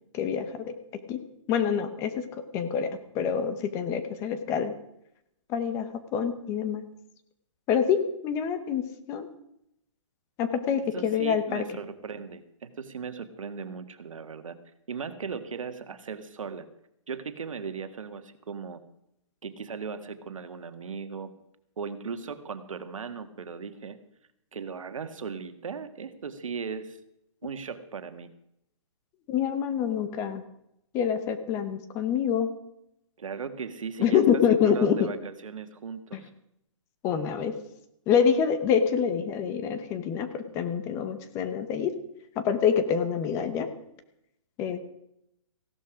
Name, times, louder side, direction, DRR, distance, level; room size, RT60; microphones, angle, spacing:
voice 1, 0.1-0.7 1.1-1.2 1.5-2.2 2.5-4.7 5.5-6.8 7.7-9.3 10.4-11.6 29.3-30.4 30.9-32.5 34.0-35.1 36.1-36.2 37.0-37.5 38.1-41.9 42.4-43.7 44.6-44.8, left 7 dB, 15° left, 10 dB, 0.9 m, -26 dB
voice 2, 10.9-14.6 14.9-16.7 17.1-18.8 19.4-21.3 21.8-24.0 24.5-27.0 27.4-28.3 33.2-36.3, right 6 dB, 80° right, 9 dB, 1.7 m, -37 dB
16.0 x 12.5 x 5.0 m, 0.79 s
hypercardioid pair, 160°, 17 cm